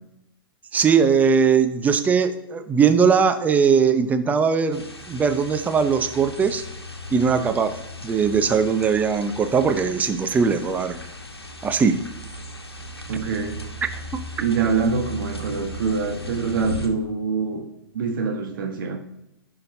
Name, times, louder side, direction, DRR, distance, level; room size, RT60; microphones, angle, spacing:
voice 1, 0.7-4.8 5.1-6.6 7.1-7.7 8.0-11.0 11.6-12.0, right 6 dB, 10° right, 9 dB, 0.7 m, -20 dB
sound 1, 4.7-16.9, left 1 dB, 90° left, 1.2 m, -37 dB
voice 2, 13.1-13.6 14.4-17.7 17.9-19.0, right 5 dB, 60° right, 3 dB, 1.4 m, -25 dB
15.5 x 5.8 x 2.7 m, 0.86 s
figure-of-eight pair, 110°, 13 cm